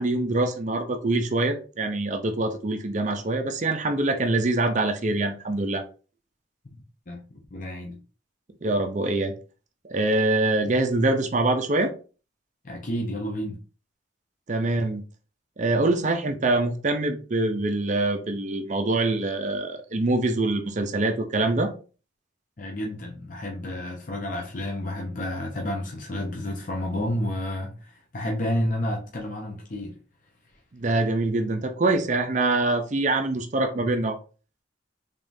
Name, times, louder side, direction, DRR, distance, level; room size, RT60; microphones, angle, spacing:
voice 1, 0.0-5.8 8.6-9.4 9.8-11.9 14.5-15.0 15.6-21.7 30.7-34.2, right 2 dB, 40° right, 0.5 m, -24 dB
voice 2, 7.1-8.0 12.6-13.6 22.6-30.0, left 1 dB, 40° left, 0.8 m, -30 dB
3.6 x 3.6 x 2.6 m
head